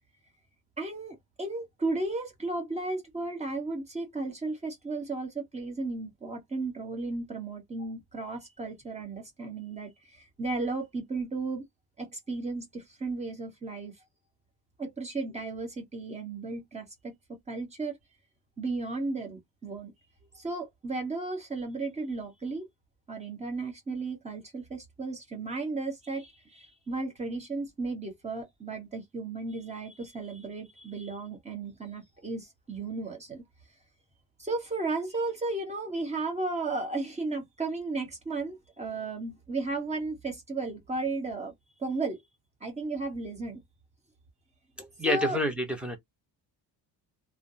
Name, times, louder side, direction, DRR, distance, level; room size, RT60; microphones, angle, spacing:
voice 1, 0.8-11.6 12.0-13.9 14.8-18.0 18.6-19.9 20.3-22.7 23.1-33.4 34.4-41.5 41.8-42.2 42.6-43.6 45.0-45.4, right 3 dB, 20° right, 1.3 m, -34 dB
voice 2, 44.8-46.0, left 1 dB, 5° right, 0.9 m, -28 dB
3.3 x 2.2 x 2.7 m
cardioid pair, 150°, 36 cm